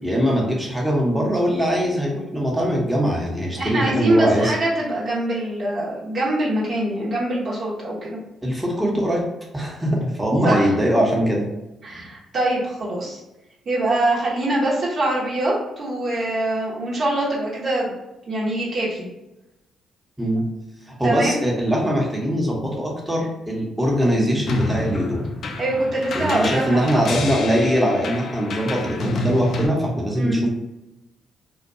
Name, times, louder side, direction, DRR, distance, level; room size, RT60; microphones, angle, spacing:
voice 1, 0.0-4.5 8.4-9.2 9.5-11.5 20.2-20.4 20.9-25.2 26.1-30.5, equal, 10° right, -3 dB, 0.8 m, -21 dB
voice 2, 3.6-8.2 8.9-9.0 10.4-11.0 11.8-13.2 13.7-17.9 18.3-19.0 21.0-21.3 25.6-27.0 30.1-30.4, right 1 dB, 55° right, -6 dB, 0.8 m, -24 dB
sound 1, 24.5-29.7, left 3 dB, 65° left, 0.4 m, -28 dB
2.5 x 2.2 x 2.5 m, 0.95 s
supercardioid pair, 55°, 0 cm